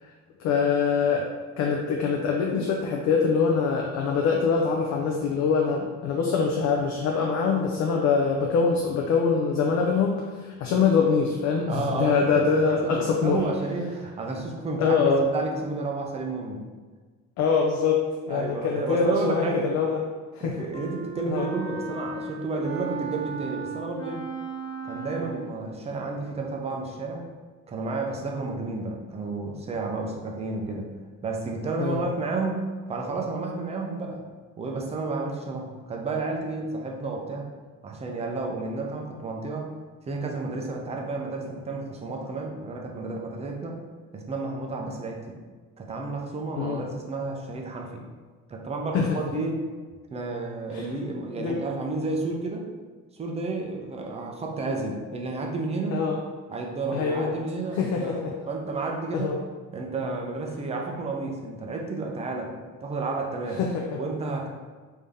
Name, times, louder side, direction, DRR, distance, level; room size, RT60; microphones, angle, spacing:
voice 1, 0.4-1.3 1.6-13.4 14.8-15.3 17.4-20.0 20.3-20.7 21.3-21.5 31.8-32.0 46.6-46.8 48.9-49.2 50.7-50.9 51.4-51.6 55.9-56.2 56.9-57.3 57.7-58.3 59.1-59.4 63.6-64.0, left 5 dB, 55° left, 0 dB, 0.5 m, -24 dB
voice 2, 11.7-12.2 12.7-16.6 18.3-19.7 20.4-24.2 24.8-27.2 27.7-30.9 31.2-34.2 34.6-37.5 37.8-39.7 40.1-43.8 44.1-45.4 45.8-48.1 48.5-49.6 50.1-52.7 53.1-56.0 56.5-59.3 59.7-63.6 64.0-64.5, right 3 dB, 20° right, 1 dB, 0.4 m, -31 dB
Wind instrument woodwind instrument, 20.7-25.6, right 4 dB, 35° left, 1.4 m, -36 dB
3.4 x 2.7 x 3.5 m, 1.4 s
cardioid pair, 145°, 33 cm